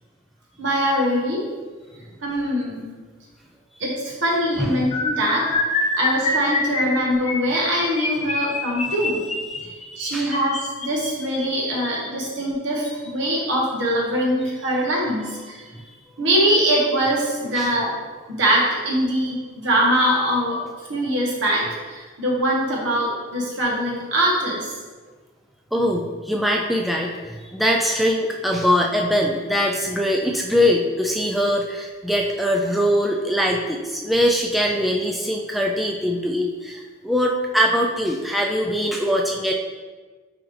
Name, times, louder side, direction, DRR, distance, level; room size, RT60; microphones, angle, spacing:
voice 1, 0.6-1.5 2.2-2.9 3.8-9.2 10.0-15.6 16.2-17.9 18.3-24.7, equal, 70° right, -3 dB, 1.5 m, -23 dB
sound 1, 4.9-12.1 12.8-13.1 13.4-13.6 13.9-14.1, left 2 dB, 35° left, 0.8 m, -26 dB
voice 2, 9.9-10.3 15.7-15.9 17.6-17.7 25.7-39.5, equal, ahead, 0 dB, 0.3 m, -22 dB
6.0 x 4.9 x 3.2 m, 1.4 s
head